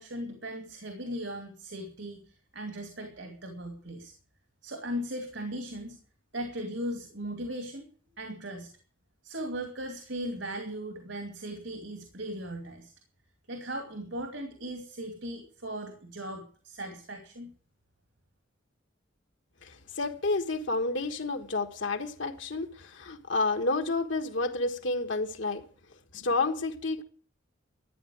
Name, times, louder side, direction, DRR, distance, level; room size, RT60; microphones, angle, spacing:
voice 1, 0.0-4.1 4.6-6.0 6.3-7.9 8.2-8.7 9.2-12.9 13.5-17.5, equal, 70° right, 2.7 m, -38 dB
voice 2, 19.6-25.6 26.1-27.0, left 3 dB, 70° left, 1.5 m, -30 dB
13.5 x 9.6 x 8.6 m
head